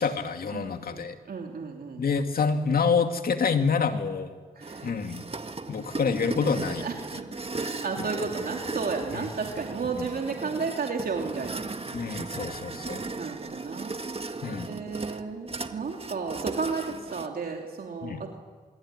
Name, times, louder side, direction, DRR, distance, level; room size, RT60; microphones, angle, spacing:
voice 1, 0.0-1.2 2.0-4.3 4.8-5.2 5.7-6.9 8.0-8.1 9.1-9.3 10.0-10.1 11.9-13.0 14.4-14.7 18.0-18.2, left 5 dB, 70° left, 6 dB, 2.4 m, -27 dB
voice 2, 0.5-2.0 4.6-4.9 6.8-6.9 7.5-11.7 13.1-13.9 14.7-18.3, right 4 dB, 70° right, 1 dB, 3.1 m, -33 dB
sound 1, 4.6-17.3, right 3 dB, 40° right, 1.9 m, -36 dB
26.0 x 22.5 x 9.9 m, 1.5 s
cardioid pair, 45°, 16 cm